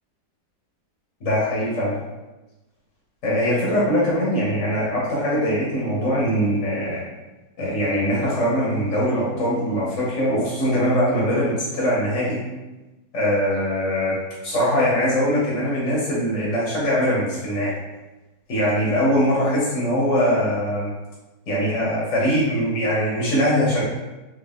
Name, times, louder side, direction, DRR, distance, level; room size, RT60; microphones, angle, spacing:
voice 1, 1.2-2.0 3.2-7.0 7.6-12.4 13.1-14.1 14.4-17.7 18.5-20.9 21.5-23.8, equal, 45° left, -6 dB, 1.3 m, -22 dB
3.8 x 3.1 x 3.5 m, 1.1 s
omnidirectional pair, 2.1 m